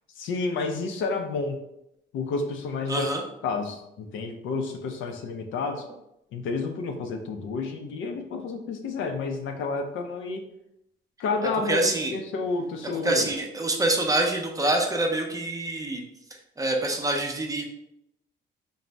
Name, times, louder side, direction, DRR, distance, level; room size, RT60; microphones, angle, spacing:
voice 1, 0.2-1.6 2.1-3.1 3.4-5.8 6.3-10.4 11.2-13.3, left 4 dB, 80° left, 4 dB, 0.4 m, -30 dB
voice 2, 2.9-3.2 5.6-5.8 11.4-12.2 12.9-16.0 16.6-17.6, right 2 dB, 15° right, 1 dB, 0.5 m, -26 dB
2.5 x 2.0 x 3.2 m, 0.81 s
cardioid pair, 90°, 20 cm